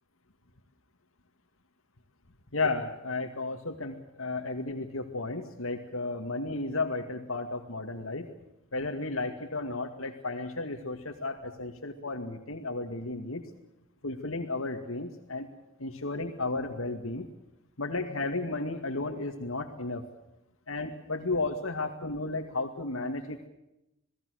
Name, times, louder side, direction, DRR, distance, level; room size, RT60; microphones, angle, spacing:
voice 1, 2.5-8.3 8.7-13.4 14.0-15.5 15.8-17.3 17.8-20.0 20.7-23.5, left 3 dB, 85° left, 4 dB, 2.3 m, -33 dB
28.0 x 19.5 x 6.5 m, 0.88 s
head